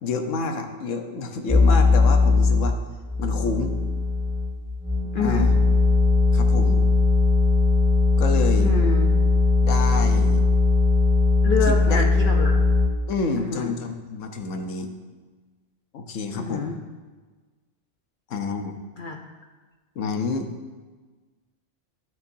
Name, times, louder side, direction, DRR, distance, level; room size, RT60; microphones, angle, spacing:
voice 1, 0.0-2.8 3.2-3.8 5.2-5.6 6.3-6.8 8.2-8.7 9.6-10.5 11.6-12.1 13.1-14.9 15.9-16.7 18.3-18.8 20.0-20.5, left 4 dB, 75° left, 5 dB, 1.1 m, -28 dB
sound 1, 1.5-2.7 3.1-12.9, left 3 dB, 10° right, 1.4 m, -19 dB
voice 2, 5.1-5.5 8.6-9.1 11.4-12.6 13.4-13.7 16.3-16.8 19.0-19.2, left 4 dB, 55° left, 3 dB, 0.6 m, -27 dB
12.5 x 5.7 x 2.6 m, 1.4 s
omnidirectional pair, 1.3 m